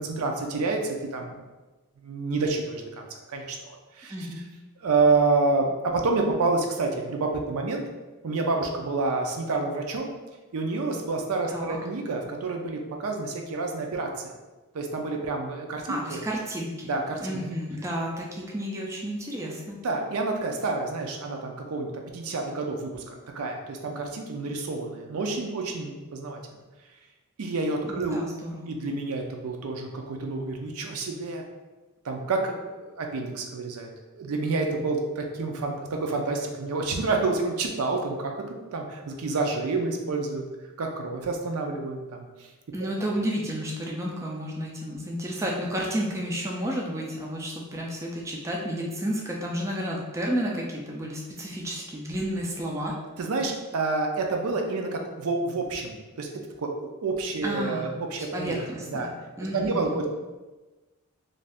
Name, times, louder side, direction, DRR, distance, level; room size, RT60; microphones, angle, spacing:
voice 1, 0.0-1.4 2.0-4.3 4.8-7.8 8.2-10.1 10.5-14.1 14.7-16.2 16.9-17.4 19.8-26.6 27.4-28.2 28.7-31.4 32.0-40.4 40.8-42.5 53.2-56.3 56.6-58.6 58.9-59.1 59.5-60.1, right 3 dB, 75° right, 2 dB, 0.4 m, -28 dB
voice 2, 4.1-4.4 11.5-11.8 15.9-16.7 17.2-19.8 27.8-28.7 42.7-52.9 57.4-60.1, equal, 15° right, -2 dB, 0.3 m, -31 dB
2.6 x 2.3 x 3.3 m, 1.2 s
head